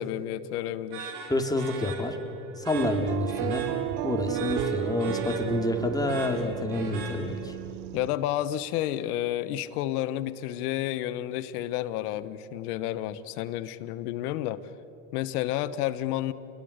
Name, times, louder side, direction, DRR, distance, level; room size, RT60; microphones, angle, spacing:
voice 1, 0.0-1.1 7.9-14.6 15.1-16.3, left 13 dB, 85° left, 14 dB, 1.3 m, -30 dB
sound 1, 0.9-7.6, right 5 dB, 65° right, 5.1 m, -42 dB
voice 2, 1.3-2.2 2.6-3.7 4.0-7.5, left 2 dB, 10° left, 4 dB, 3.0 m, -28 dB
sound 2, 2.7-8.1, right 15 dB, 90° right, 0.8 m, -32 dB
28.5 x 21.5 x 8.2 m, 3.0 s
supercardioid pair, 105°, 44 cm